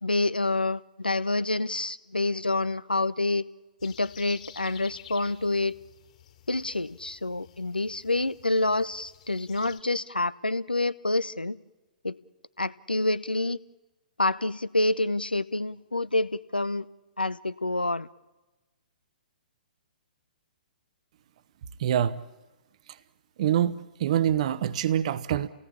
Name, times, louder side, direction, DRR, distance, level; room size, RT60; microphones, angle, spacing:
voice 1, 0.0-3.4 3.8-5.8 6.5-11.6 12.0-12.2 12.6-13.6 14.2-16.9 17.2-18.1, left 2 dB, 85° left, 0.8 m, -27 dB
sound 1, 3.8-9.8, left 10 dB, 45° left, 3.6 m, -51 dB
voice 2, 21.8-22.2 23.4-25.5, right 10 dB, 45° right, 1.0 m, -25 dB
29.5 x 18.5 x 8.7 m
figure-of-eight pair, 120°, 5 cm